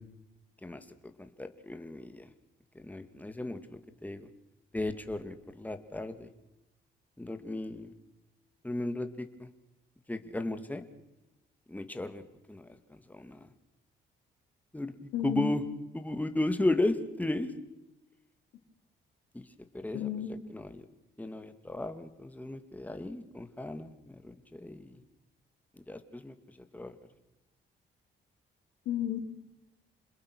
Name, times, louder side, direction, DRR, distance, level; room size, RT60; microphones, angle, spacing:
voice 1, 1.2-2.3 2.7-4.3 4.7-6.3 7.2-7.9 8.6-9.5 10.1-10.9 11.7-12.2 12.5-13.5 14.7-15.6 15.9-17.5 19.3-19.5 19.7-20.1 20.5-20.8 21.2-25.0 25.8-27.0, left 2 dB, 10° left, 8 dB, 2.3 m, -35 dB
voice 2, 15.1-15.5 19.9-20.3 28.8-29.2, left 10 dB, 90° left, -2 dB, 3.4 m, -32 dB
27.5 x 21.0 x 6.3 m, 0.97 s
cardioid pair, 90°, 20 cm